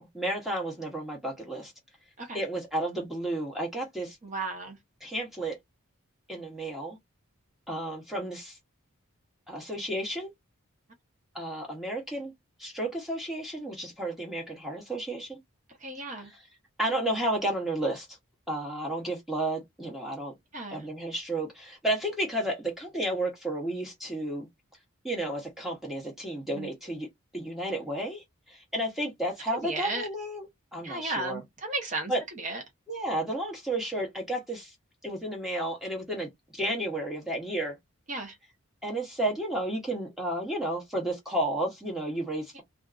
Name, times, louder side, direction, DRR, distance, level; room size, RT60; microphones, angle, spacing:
voice 1, 0.0-1.7 2.3-4.2 5.0-5.6 6.3-7.0 7.7-8.6 9.5-10.3 11.3-12.3 12.6-15.4 16.2-16.5 16.8-18.1 18.5-20.3 20.7-24.5 25.0-27.1 27.3-31.4 32.1-32.2 32.9-34.7 35.0-37.8 38.8-42.6, right 1 dB, ahead, 0.8 m, -32 dB
voice 2, 4.2-4.8 15.8-16.3 20.5-20.8 26.5-26.7 29.6-30.0 30.8-32.1 32.4-32.6 38.1-38.3, right 2 dB, 35° right, 0.9 m, -34 dB
2.6 x 2.4 x 2.3 m
head